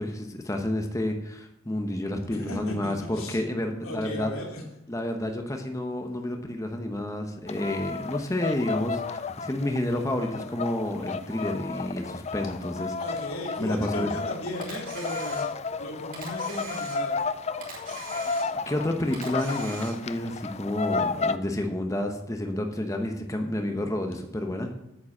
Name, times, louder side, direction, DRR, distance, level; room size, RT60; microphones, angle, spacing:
voice 1, 0.0-4.3 4.9-13.0 13.6-14.1 18.7-24.7, left 1 dB, 15° left, 4 dB, 0.9 m, -30 dB
voice 2, 2.3-3.4 3.8-4.6 13.0-15.4 15.7-17.2, left 1 dB, 90° left, 0 dB, 2.8 m, -35 dB
sound 1, 7.5-21.4, left 4 dB, 30° left, 0.4 m, -33 dB
Camera, 14.6-15.8 16.1-17.3 17.6-18.8 19.1-20.2, right 4 dB, 40° right, 3.4 m, -42 dB
8.8 x 7.4 x 7.1 m, 0.85 s
head